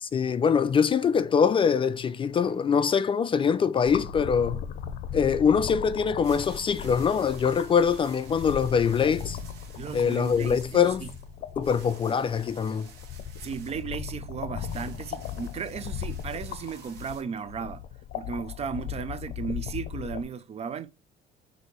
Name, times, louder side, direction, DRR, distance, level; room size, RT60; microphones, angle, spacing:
voice 1, 0.0-4.6 5.1-9.4 9.9-11.1 11.6-12.9, left 6 dB, 30° left, 0.3 m, -23 dB
sound 1, 3.8-20.2, left 8 dB, 65° left, 0.6 m, -37 dB
sound 2, 6.2-17.2, right 5 dB, 80° right, 1.1 m, -51 dB
voice 2, 9.8-11.1 13.4-17.8 18.1-20.9, right 6 dB, 40° right, 0.5 m, -35 dB
6.3 x 2.7 x 3.0 m
cardioid pair, 110°, 17 cm